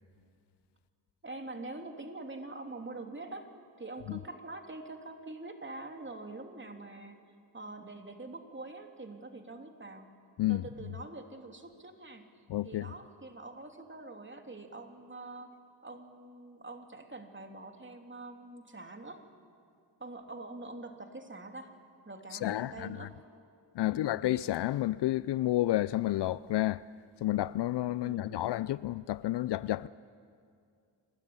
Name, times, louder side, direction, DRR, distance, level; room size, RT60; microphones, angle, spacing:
voice 1, 1.2-3.5 3.8-7.2 7.5-10.1 10.5-12.3 12.6-15.5 15.8-19.2 20.0-21.7 22.0-23.1 23.8-24.1 28.0-28.5, right 2 dB, 25° right, 3.2 m, -45 dB
voice 2, 12.5-12.9 22.3-23.1 23.7-26.8 27.2-29.9, left 15 dB, 65° left, 0.5 m, -30 dB
29.5 x 13.0 x 9.8 m
supercardioid pair, 50°, 45 cm